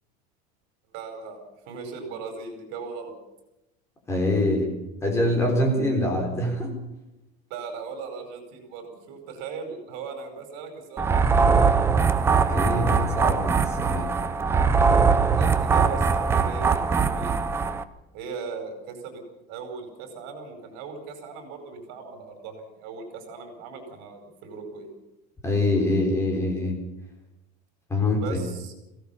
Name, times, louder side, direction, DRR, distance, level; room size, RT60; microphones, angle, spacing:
voice 1, 0.9-1.4 1.6-3.1 7.5-11.7 14.8-17.4 18.1-19.2 19.5-24.9 28.2-28.7, right 5 dB, 60° right, 6 dB, 5.1 m, -38 dB
voice 2, 4.1-4.7 5.0-6.7 12.5-14.1 25.4-26.8 27.9-28.4, left 1 dB, 15° left, 1 dB, 4.1 m, -24 dB
sound 1, 11.0-17.8, right 5 dB, 10° right, 0.6 m, -21 dB
22.5 x 17.0 x 7.1 m, 0.94 s
cardioid pair, 175°, 20 cm